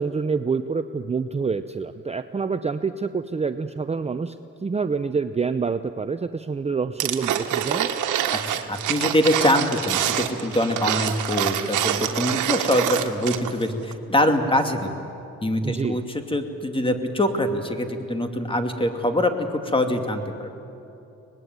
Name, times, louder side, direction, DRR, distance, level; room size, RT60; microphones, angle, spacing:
voice 1, 0.0-4.4 4.6-7.9 15.6-16.0, right 5 dB, 20° right, 9 dB, 0.7 m, -27 dB
sound 1, 7.0-13.6 13.9-14.0, right 11 dB, 85° right, 1.5 m, -26 dB
voice 2, 8.7-14.9 15.4-20.5, left 1 dB, 15° left, 6 dB, 2.4 m, -24 dB
24.5 x 20.0 x 9.5 m, 2.8 s
cardioid pair, 90°, 30 cm